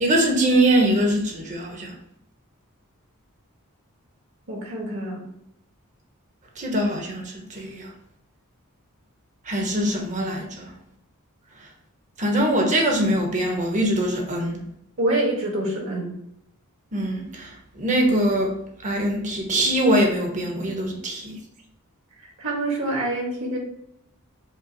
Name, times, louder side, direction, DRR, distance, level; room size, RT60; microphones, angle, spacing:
voice 1, 0.0-1.9 6.6-7.9 9.5-10.7 12.2-14.6 16.9-17.5 17.7-18.5 18.8-21.3, right 1 dB, 35° right, 1 dB, 0.9 m, -22 dB
voice 2, 4.5-5.2 15.0-16.1 22.4-23.6, right 1 dB, 60° right, -2 dB, 1.4 m, -26 dB
5.2 x 2.0 x 4.0 m, 0.76 s
head